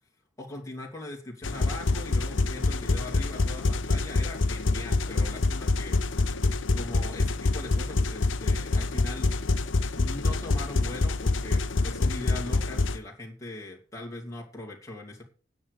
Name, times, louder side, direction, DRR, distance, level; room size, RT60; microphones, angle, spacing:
voice 1, 0.4-6.0 6.7-9.3 9.9-15.2, left 2 dB, 15° left, -2 dB, 2.8 m, -40 dB
sound 1, 1.4-13.0, left 3 dB, 80° left, 0.9 m, -26 dB
10.0 x 6.7 x 8.1 m, 0.38 s
head